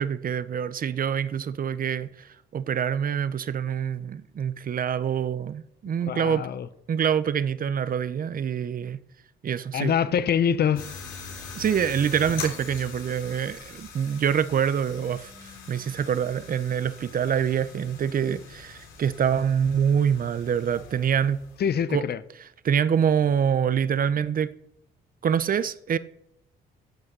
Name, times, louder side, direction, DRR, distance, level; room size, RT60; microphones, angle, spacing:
voice 1, 0.0-6.5 6.9-9.0 9.4-10.0 11.5-21.4 21.9-22.0 22.6-24.5 25.2-26.0, right 8 dB, 45° right, 0.7 m, -25 dB
voice 2, 6.0-6.7 9.7-10.9 21.6-22.2, left 8 dB, 55° left, 0.8 m, -24 dB
sound 1, 10.8-21.8, left 5 dB, 80° left, 3.3 m, -42 dB
17.0 x 6.4 x 6.1 m
cardioid pair, 90°, 20 cm